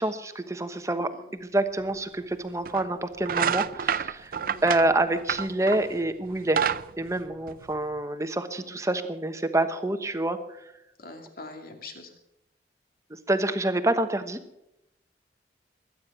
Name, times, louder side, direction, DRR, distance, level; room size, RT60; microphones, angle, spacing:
voice 1, 0.0-1.1 1.4-4.3 4.6-6.6 7.0-10.4 13.3-14.4, right 2 dB, 15° right, 9 dB, 1.1 m, -27 dB
sound 1, 1.9-2.0 2.6-2.9 3.2-5.9 6.3-8.0, right 7 dB, 55° right, 0.5 m, -28 dB
voice 2, 4.4-4.7 8.6-8.8 11.0-12.1, left 3 dB, 55° left, 4 dB, 2.5 m, -44 dB
22.0 x 9.6 x 6.0 m, 0.84 s
head